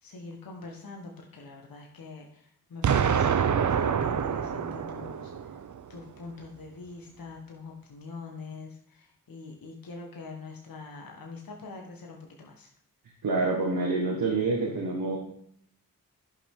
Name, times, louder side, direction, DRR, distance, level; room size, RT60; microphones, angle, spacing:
voice 1, 0.0-5.6 5.9-12.7, left 4 dB, 65° left, 1 dB, 1.6 m, -44 dB
Explosion, 2.8-5.8, right 7 dB, 55° right, 0.7 m, -26 dB
voice 2, 13.2-15.2, right 3 dB, 70° right, -3 dB, 1.7 m, -27 dB
10.5 x 5.8 x 3.7 m, 0.64 s
cardioid pair, 45°, 37 cm